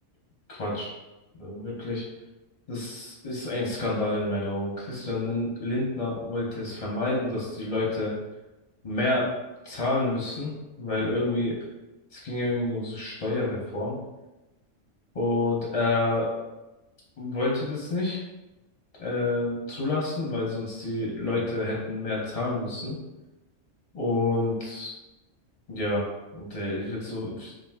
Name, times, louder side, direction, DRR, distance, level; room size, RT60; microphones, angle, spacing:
voice 1, 0.5-0.9 1.4-2.0 2.7-8.1 8.8-9.3 9.6-10.5 10.8-11.6 12.1-14.0 15.1-16.3 17.2-18.2 19.0-23.0 23.9-24.9 25.7-26.1 26.3-27.5, left 2 dB, 45° left, -4 dB, 0.5 m, -28 dB
2.5 x 2.4 x 3.4 m, 1.0 s
omnidirectional pair, 1.3 m